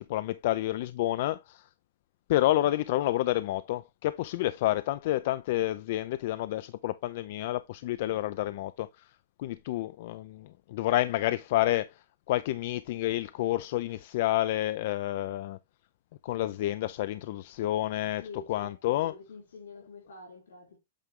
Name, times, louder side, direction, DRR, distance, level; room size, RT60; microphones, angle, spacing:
voice 1, 0.0-1.6 2.3-9.1 9.4-15.6 16.2-18.2 18.5-19.1, left 15 dB, 60° left, 0.4 m, -29 dB
voice 2, 18.2-20.8, left 3 dB, 85° left, 4.0 m, -47 dB
8.3 x 3.6 x 3.6 m
hypercardioid pair, 125°, 0 cm